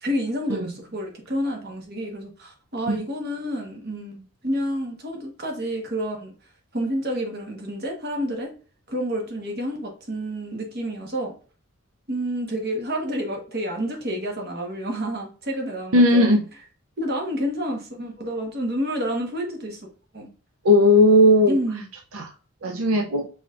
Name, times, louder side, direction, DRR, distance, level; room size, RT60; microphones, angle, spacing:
voice 1, 0.0-6.3 6.7-8.5 8.9-11.3 12.1-16.4 17.0-19.8 20.1-20.3 21.5-21.9, equal, 45° right, 2 dB, 1.2 m, -29 dB
voice 2, 15.9-16.4 20.6-21.6 22.1-22.3 22.6-23.3, left 1 dB, 80° right, 3 dB, 0.6 m, -16 dB
4.9 x 3.8 x 2.4 m, 0.38 s
head